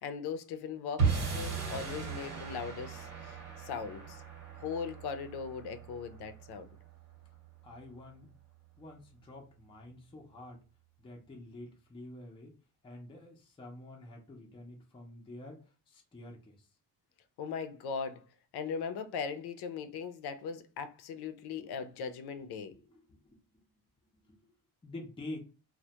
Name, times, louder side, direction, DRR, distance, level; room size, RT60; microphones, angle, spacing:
voice 1, 0.0-4.2 4.6-6.7 17.4-18.2 18.5-22.7, left 6 dB, 80° left, 0.5 m, -39 dB
sound 1, 1.0-7.4, right 5 dB, 80° right, 1.1 m, -36 dB
voice 2, 7.6-8.3 8.8-10.6 11.0-12.6 12.8-16.7 21.6-21.7 22.7-23.7 24.1-24.5 24.8-25.4, left 1 dB, 15° left, 0.4 m, -48 dB
2.1 x 2.1 x 2.7 m
cardioid pair, 140°, 38 cm